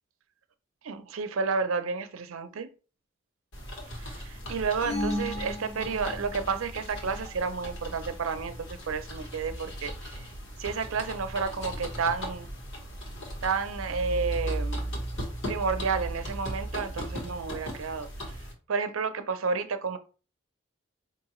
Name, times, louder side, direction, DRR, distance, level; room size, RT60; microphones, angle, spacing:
voice 1, 0.8-2.7 4.0-10.2 10.6-12.5 13.4-14.9 15.5-18.1 18.7-20.0, right 5 dB, 85° right, 0.5 m, -31 dB
sound 1, 3.5-18.5, equal, 60° left, 1.2 m, -37 dB
sound 2, 4.8-6.5, left 1 dB, 30° left, 0.8 m, -34 dB
4.7 x 2.5 x 3.0 m
head